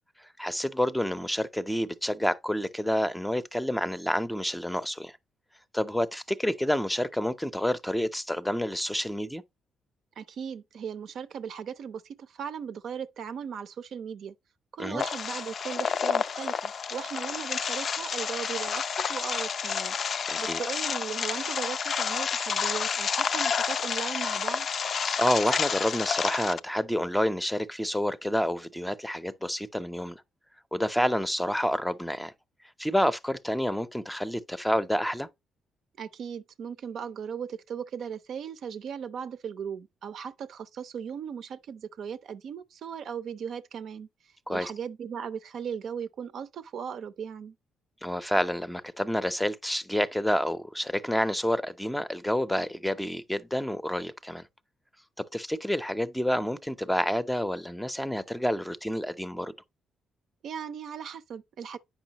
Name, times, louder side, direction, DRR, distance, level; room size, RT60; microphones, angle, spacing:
voice 1, 0.2-5.2 5.7-9.4 14.8-15.0 20.3-20.6 25.2-30.2 30.7-32.3 32.8-35.3 44.5-44.7 48.0-54.4 55.2-59.5, equal, 5° left, 0.6 m, -29 dB
voice 2, 10.2-14.3 14.7-20.0 20.4-24.7 36.0-44.1 44.5-47.6 60.4-61.8, right 7 dB, 65° right, 0.6 m, -37 dB
sound 1, 15.0-26.6, left 6 dB, 50° left, 0.4 m, -30 dB
8.6 x 5.5 x 2.9 m
cardioid pair, 90°, 0 cm